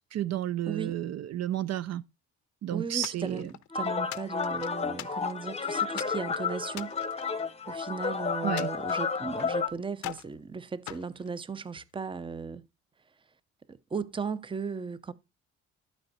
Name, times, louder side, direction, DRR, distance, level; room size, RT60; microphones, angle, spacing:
voice 1, 0.1-2.0 2.6-3.5 8.4-8.7, right 12 dB, 60° right, 0.5 m, -32 dB
voice 2, 2.7-7.0 7.7-12.6 13.7-15.1, right 5 dB, 15° right, 0.6 m, -36 dB
sound 1, 3.0-3.7 4.1-5.5 6.0-6.2 6.7-8.0 8.6-9.6 10.0-10.4 10.9-11.9, left 15 dB, 75° left, 0.6 m, -43 dB
sound 2, 3.7-9.7, left 5 dB, 20° left, 0.8 m, -31 dB
12.0 x 4.4 x 4.0 m
cardioid pair, 90°, 30 cm